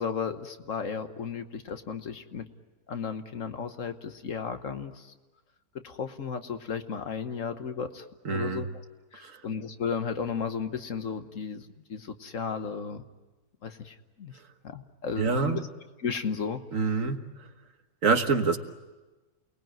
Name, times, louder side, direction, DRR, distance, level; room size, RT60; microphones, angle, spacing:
voice 1, 0.0-2.5 2.9-5.1 5.8-8.7 9.1-13.0 13.6-14.3 14.6-15.6 16.0-16.6, left 6 dB, 60° left, 8 dB, 1.5 m, -34 dB
voice 2, 8.2-8.6 9.2-9.4 15.2-15.6 16.7-17.5 18.0-18.6, right 4 dB, 60° right, 7 dB, 1.7 m, -26 dB
29.0 x 20.0 x 9.1 m, 1.2 s
omnidirectional pair, 1.6 m